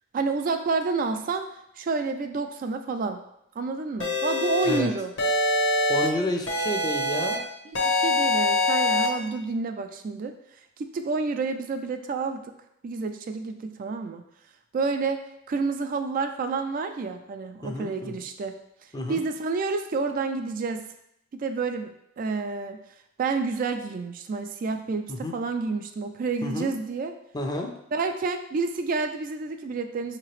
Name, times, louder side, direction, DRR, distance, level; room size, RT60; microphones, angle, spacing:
voice 1, 0.1-1.5 1.8-3.2 3.6-5.1 7.7-10.3 10.8-12.4 12.8-14.2 14.7-15.2 15.5-18.6 19.1-20.9 21.3-21.9 22.2-22.8 23.2-27.1 27.9-30.2, right 4 dB, 45° right, 7 dB, 0.3 m, -29 dB
sound 1, 4.0-4.8 5.2-6.1 6.5-7.3 7.7-9.1, left 2 dB, 65° left, 1.0 m, -24 dB
voice 2, 5.9-7.4 17.6-18.1 18.9-19.2 25.1-25.3 26.4-26.7 27.3-27.7, left 1 dB, 20° left, 3 dB, 0.5 m, -30 dB
5.6 x 2.9 x 3.1 m, 0.77 s
head